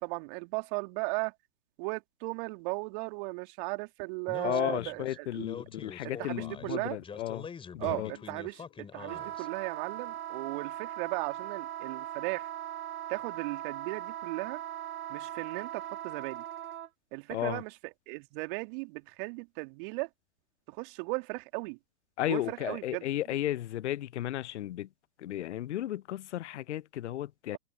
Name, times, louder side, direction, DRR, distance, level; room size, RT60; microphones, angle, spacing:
voice 1, 0.0-1.3 1.8-5.5 6.2-7.0 7.8-12.5 13.1-14.6 15.1-16.4 17.1-17.7 18.1-20.1 20.7-21.8 22.3-23.0, right 30 dB, 35° right, 2.6 m, -36 dB
Speech, 4.3-9.5, left 6 dB, 10° left, 3.9 m, -45 dB
voice 2, 4.4-7.5 7.7-8.1 17.3-17.6 22.2-24.9 25.2-27.6, left 13 dB, 45° left, 0.7 m, -34 dB
sound 1, 7.8-10.8, left 22 dB, 30° left, 3.7 m, -53 dB
Wind instrument woodwind instrument, 9.0-16.9, right 12 dB, 65° right, 1.9 m, -40 dB
figure-of-eight pair, 120°, 47 cm